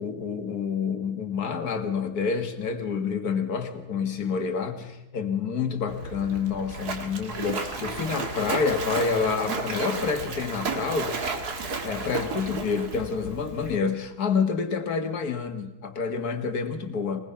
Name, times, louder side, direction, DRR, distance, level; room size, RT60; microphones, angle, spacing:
voice 1, 0.0-11.4 11.8-17.2, left 5 dB, 70° left, 7 dB, 2.2 m, -28 dB
Splash splatter, 5.9-13.8, right 4 dB, 75° right, 2.4 m, -33 dB
23.0 x 19.5 x 5.8 m, 0.95 s
omnidirectional pair, 1.7 m